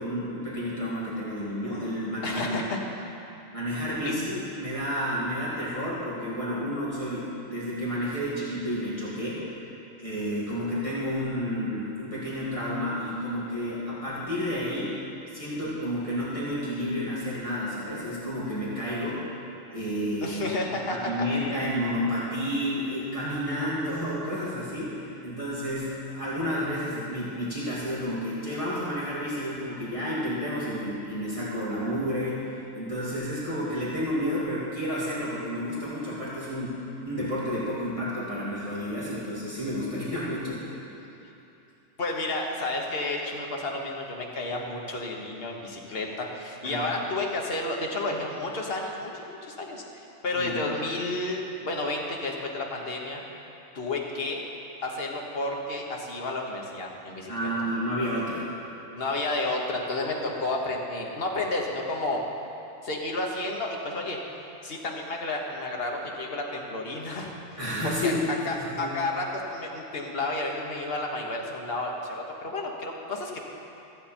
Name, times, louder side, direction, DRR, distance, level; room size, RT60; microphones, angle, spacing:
voice 1, 0.0-2.6 3.5-9.6 10.0-15.0 15.3-19.2 19.7-20.4 20.9-40.8 46.6-47.0 50.3-50.5 57.3-58.5 67.6-68.2 68.5-68.9, equal, 25° left, -9 dB, 2.2 m, -31 dB
voice 2, 2.2-2.8 4.0-4.1 20.2-21.1 42.0-49.8 50.2-53.2 53.7-54.4 54.8-57.5 59.0-62.2 62.8-64.2 64.6-67.3 67.8-68.1 68.4-73.5, left 2 dB, 55° left, 0 dB, 1.4 m, -31 dB
14.5 x 8.2 x 4.4 m, 2.9 s
omnidirectional pair, 1.2 m